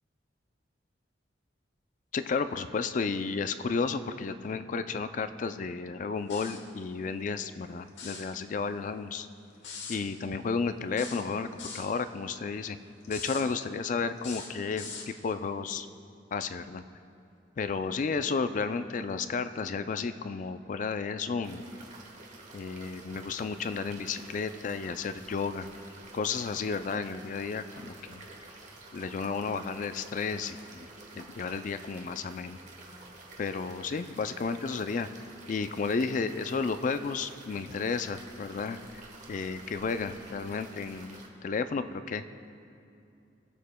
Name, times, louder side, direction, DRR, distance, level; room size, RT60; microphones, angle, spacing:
voice 1, 2.1-9.3 9.9-12.8 13.1-15.9 16.3-16.8 17.6-21.6 22.5-25.7 26.1-28.2 28.9-30.9 31.2-32.6 33.4-35.1 35.5-39.0 39.3-42.2, left 5 dB, 45° left, 11 dB, 0.3 m, -32 dB
sound 1, 6.3-6.7 7.9-8.3 9.6-10.0 11.0-11.9 13.0-13.5 14.2-15.1, left 5 dB, 70° left, 1.2 m, -41 dB
sound 2, 21.4-41.3, right 2 dB, 40° right, 1.1 m, -50 dB
20.5 x 7.2 x 2.2 m, 2.7 s
head